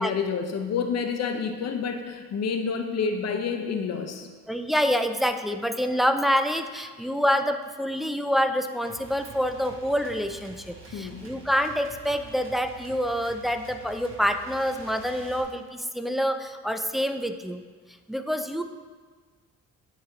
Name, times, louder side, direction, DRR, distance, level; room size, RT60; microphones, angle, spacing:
voice 1, 0.0-4.3 10.9-11.2, left 5 dB, 55° left, 5 dB, 0.7 m, -29 dB
voice 2, 4.5-17.6 18.1-18.6, equal, ahead, 7 dB, 0.3 m, -27 dB
sound 1, 8.8-15.4, right 3 dB, 45° right, 1.2 m, -47 dB
9.8 x 3.3 x 3.8 m, 1.5 s
cardioid pair, 90°, 30 cm